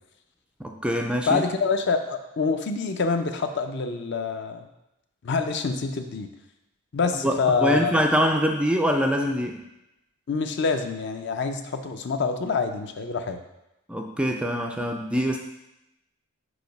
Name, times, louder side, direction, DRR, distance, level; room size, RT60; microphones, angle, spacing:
voice 1, 0.6-1.4 7.2-9.6 13.9-15.4, equal, 5° right, 3 dB, 0.3 m, -24 dB
voice 2, 1.3-4.7 5.2-6.3 6.9-8.0 10.3-13.4, left 4 dB, 55° left, 7 dB, 0.5 m, -26 dB
4.9 x 4.7 x 5.2 m, 0.91 s
head